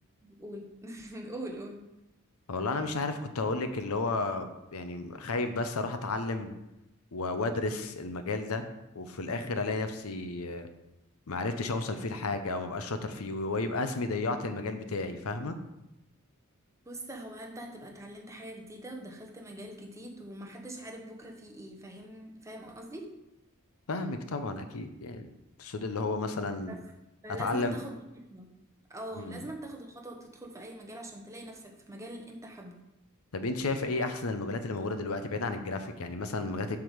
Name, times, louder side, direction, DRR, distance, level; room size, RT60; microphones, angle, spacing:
voice 1, 0.2-1.9 16.8-23.1 26.4-26.8 27.2-28.5 28.9-32.8, right 1 dB, 15° right, 1 dB, 1.0 m, -43 dB
voice 2, 2.5-6.5 7.1-8.7 8.9-10.7 11.3-15.6 23.9-25.3 25.6-26.8 27.4-27.8 29.2-29.4 33.3-36.8, left 3 dB, 70° left, 8 dB, 0.7 m, -32 dB
7.7 x 3.6 x 6.5 m, 0.91 s
head